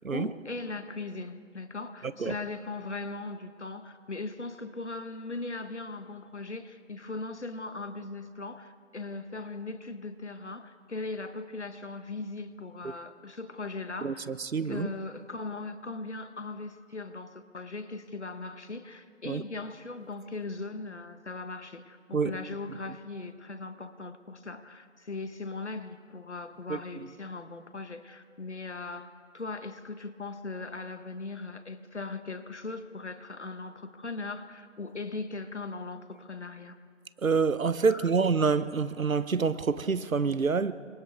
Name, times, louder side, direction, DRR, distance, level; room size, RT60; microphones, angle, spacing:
voice 1, 0.1-14.3 14.6-36.8 37.9-38.1, left 3 dB, 60° left, 1.4 m, -39 dB
voice 2, 14.0-14.9 19.3-19.4 22.1-22.3 26.7-26.8 37.2-40.7, right 5 dB, 85° right, 1.0 m, -27 dB
29.0 x 26.0 x 3.6 m
figure-of-eight pair, 175°, 40 cm